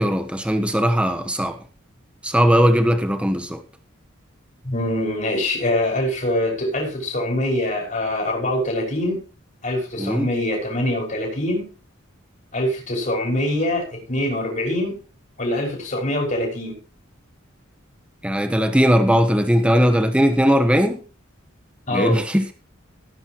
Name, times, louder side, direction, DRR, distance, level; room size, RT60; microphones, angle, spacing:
voice 1, 0.0-1.6 2.2-3.6 10.0-10.3 18.2-21.0 21.9-22.5, equal, 5° right, 1.2 m, -19 dB
voice 2, 4.6-9.2 9.6-11.7 12.5-15.0 15.4-16.8 21.9-22.2, left 1 dB, 40° left, 5.7 m, -24 dB
17.5 x 9.8 x 3.1 m
head